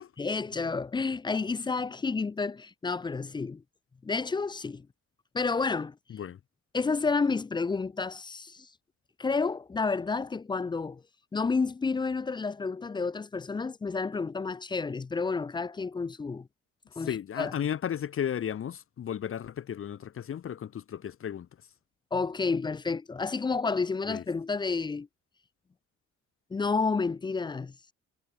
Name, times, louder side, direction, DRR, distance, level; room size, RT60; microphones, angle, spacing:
voice 1, 0.2-3.6 4.0-4.9 5.3-6.0 6.7-8.7 9.2-11.0 11.3-16.5 17.0-17.5 22.1-25.1 26.5-27.7, left 4 dB, 15° left, 0.3 m, -30 dB
voice 2, 17.0-21.5 24.1-24.2, left 9 dB, 45° left, 0.8 m, -34 dB
cardioid pair, 90°, 30 cm